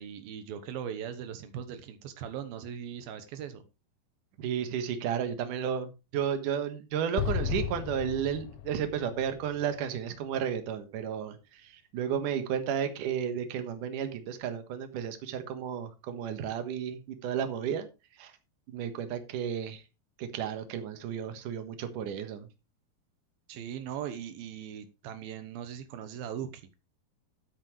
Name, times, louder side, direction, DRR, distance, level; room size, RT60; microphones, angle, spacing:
voice 1, 0.0-3.6 23.5-26.6, right 9 dB, 85° right, 9 dB, 2.9 m, -39 dB
voice 2, 4.4-17.9 18.2-18.3 18.7-19.8 20.2-22.5, right 8 dB, 65° right, 8 dB, 2.9 m, -33 dB
Explosion, 7.2-10.5, left 8 dB, 85° left, 2.6 m, -35 dB
13.5 x 8.4 x 3.2 m, 0.28 s
omnidirectional pair, 4.1 m